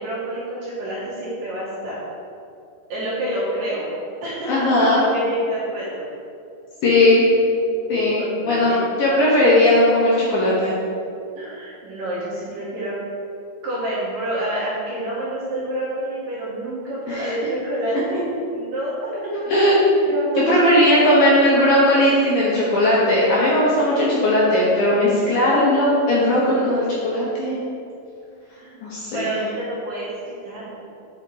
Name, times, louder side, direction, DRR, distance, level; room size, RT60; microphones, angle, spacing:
voice 1, 0.0-2.0 2.9-3.9 4.2-4.5 4.8-6.1 8.2-8.8 11.4-13.0 13.6-19.1 19.5-19.8 20.0-21.3 28.6-28.8 29.1-30.8, right 1 dB, 60° right, -8 dB, 2.6 m, -28 dB
voice 2, 4.5-5.0 6.8-7.2 7.9-10.7 17.1-17.3 19.3-19.9 20.4-27.6 28.8-29.4, left 1 dB, 70° left, -6 dB, 2.3 m, -18 dB
8.3 x 6.1 x 4.0 m, 2.5 s
omnidirectional pair, 5.2 m